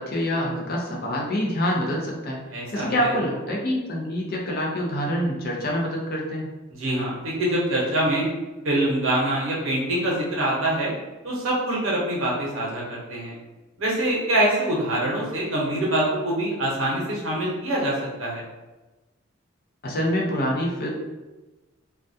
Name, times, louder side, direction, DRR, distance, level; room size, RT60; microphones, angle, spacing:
voice 1, 0.0-2.4 2.7-6.5 19.8-20.9, equal, 45° left, -1 dB, 0.5 m, -26 dB
voice 2, 2.5-3.1 6.8-8.3 8.6-10.9 11.2-13.3 13.8-18.4, right 1 dB, 70° right, -4 dB, 0.7 m, -24 dB
2.2 x 2.2 x 2.6 m, 1.1 s
head